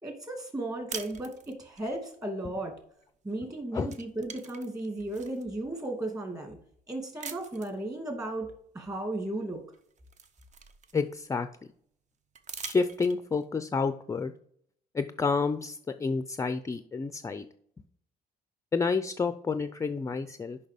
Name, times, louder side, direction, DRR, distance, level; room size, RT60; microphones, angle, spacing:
voice 1, 0.0-2.7 3.2-6.6 6.9-8.5 8.7-9.6, right 1 dB, 20° right, 4 dB, 2.3 m, -35 dB
sound 1, 0.9-1.9 3.3-3.5 3.8-5.4 6.1-6.2 7.2-7.8 9.2-9.3 9.7-11.3 12.3-13.4, right 5 dB, 45° right, 0.8 m, -43 dB
voice 2, 10.9-11.5 12.6-14.3 14.9-17.4 18.7-20.6, left 4 dB, 20° left, 10 dB, 0.4 m, -29 dB
6.5 x 5.5 x 5.0 m, 0.64 s
cardioid pair, 110°, 17 cm